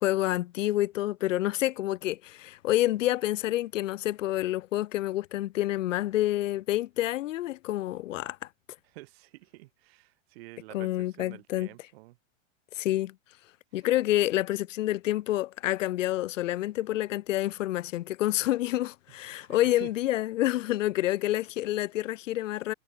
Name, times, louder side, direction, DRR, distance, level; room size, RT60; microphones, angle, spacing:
voice 1, 0.0-8.4 10.7-11.7 12.8-13.1 13.7-22.7, left 15 dB, 75° left, 0.9 m, -28 dB
voice 2, 8.9-12.2 13.7-13.8 19.4-19.9, right 19 dB, 50° right, 6.3 m, -48 dB
supercardioid pair, 165°, 39 cm